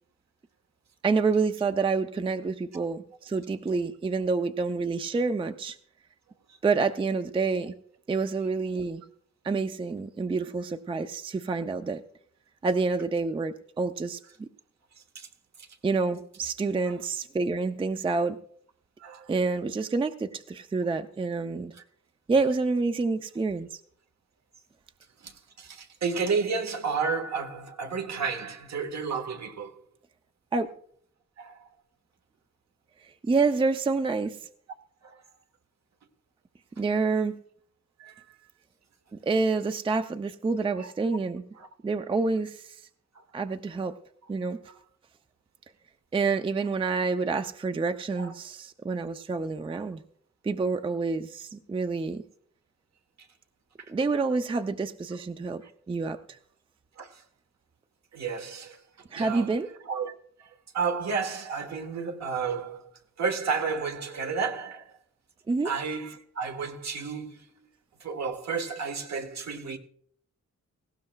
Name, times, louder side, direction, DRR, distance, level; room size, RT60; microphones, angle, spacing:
voice 1, 1.0-5.8 6.6-7.7 8.1-9.0 9.4-12.0 12.6-14.5 15.8-18.4 19.3-21.7 22.3-23.8 30.5-30.7 33.0-34.4 36.8-37.4 39.1-41.4 41.8-42.8 43.3-43.9 44.3-44.6 46.1-50.0 50.4-52.2 53.9-55.6 55.9-56.4 59.1-59.7 65.5-65.7, right 4 dB, 20° right, 0.4 m, -28 dB
voice 2, 19.0-19.3 21.7-21.8 25.2-29.8 31.4-31.7 35.0-35.2 38.0-38.2 40.7-40.9 41.6-41.7 43.1-43.2 48.2-48.3 55.6-55.7 57.0-57.2 58.1-58.8 59.1-59.5 59.8-62.9 63.2-65.0 65.6-67.7 68.0-69.8, right 5 dB, 65° right, 1.2 m, -32 dB
18.0 x 16.0 x 2.2 m
wide cardioid pair, 165°, 29 cm